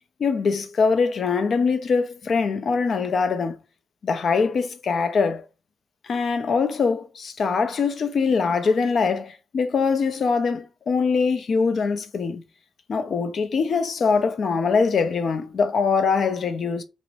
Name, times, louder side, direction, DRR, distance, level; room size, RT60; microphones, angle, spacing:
voice 1, 0.2-3.6 4.0-5.4 6.0-12.4 12.9-16.8, left 5 dB, 55° left, 0.4 m, -23 dB
2.6 x 2.0 x 2.9 m
cardioid pair, 105°, 0 cm